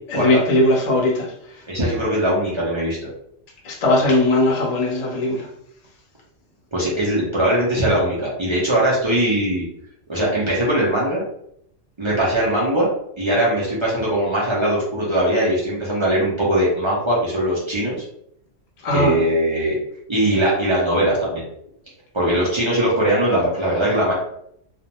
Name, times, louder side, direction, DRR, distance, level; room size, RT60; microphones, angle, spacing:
voice 1, 0.1-1.3 3.6-5.5 18.8-19.2, left 1 dB, 40° left, -2 dB, 0.6 m, -19 dB
voice 2, 1.7-3.0 6.7-9.6 10.1-11.2 12.0-18.0 18.9-19.8 20.1-21.4 22.1-24.1, right 1 dB, 40° right, -6 dB, 0.4 m, -20 dB
2.4 x 2.1 x 2.9 m, 0.72 s
omnidirectional pair, 1.3 m